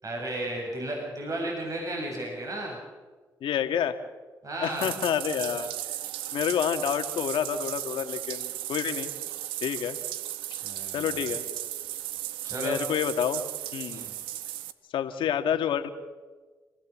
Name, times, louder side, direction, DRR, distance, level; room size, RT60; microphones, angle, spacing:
voice 1, 0.0-2.8 4.4-4.9 10.6-11.2 12.4-12.8 13.9-14.1, right 1 dB, 40° right, -1 dB, 7.3 m, -33 dB
voice 2, 3.4-4.0 4.6-5.7 6.3-9.1 9.6-10.0 10.5-10.6 10.9-11.4 12.6-13.4 13.7-14.1 14.9-15.9, left 9 dB, 75° left, 8 dB, 1.8 m, -28 dB
Bathtub (filling or washing), 4.6-14.7, right 13 dB, 85° right, 0.9 m, -35 dB
29.0 x 16.0 x 7.4 m, 1.4 s
supercardioid pair, 50°, 9 cm